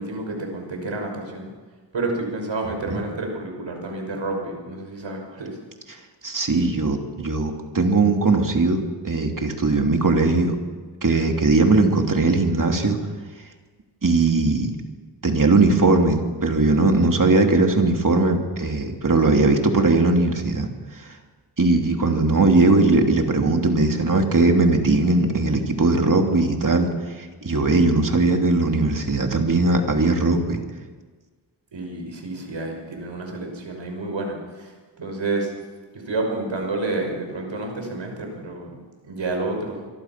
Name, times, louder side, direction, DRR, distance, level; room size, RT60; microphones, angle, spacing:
voice 1, 0.0-1.5 1.9-5.6 31.7-35.5 35.9-38.8 39.0-39.9, right 2 dB, 85° right, 3 dB, 5.8 m, -29 dB
voice 2, 6.2-10.6 11.0-13.0 14.0-14.7 15.2-20.7 21.0-21.2 21.6-30.6, right 3 dB, 45° right, 3 dB, 2.9 m, -19 dB
26.5 x 23.0 x 6.0 m, 1.4 s
wide cardioid pair, 105°, 44 cm